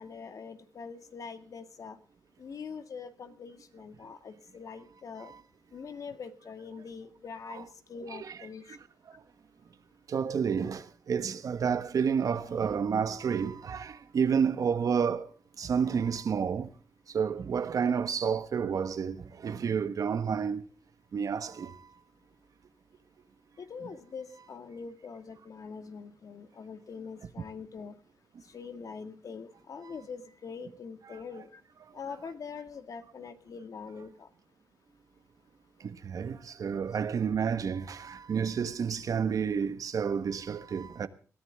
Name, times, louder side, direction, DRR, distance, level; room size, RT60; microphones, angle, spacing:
voice 1, 0.0-2.0 2.4-5.3 5.7-8.8 23.6-27.9 28.5-31.6 31.9-34.3, left 5 dB, 65° left, 2.0 m, -43 dB
voice 2, 10.1-15.3 15.6-16.7 17.1-20.6 21.1-21.8 31.1-31.2 35.8-41.1, right 6 dB, 70° right, 1.3 m, -30 dB
21.0 x 14.5 x 3.5 m
cardioid pair, 90°, 6 cm